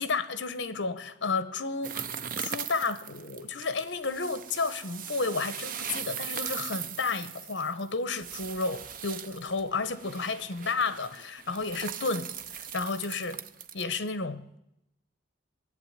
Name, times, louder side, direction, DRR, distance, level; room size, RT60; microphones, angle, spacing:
voice 1, 0.0-2.1 2.4-13.4 13.7-14.6, left 4 dB, 65° left, 1.0 m, -32 dB
sound 1, 1.8-13.8, right 8 dB, 45° right, 0.6 m, -39 dB
19.0 x 8.0 x 9.2 m
head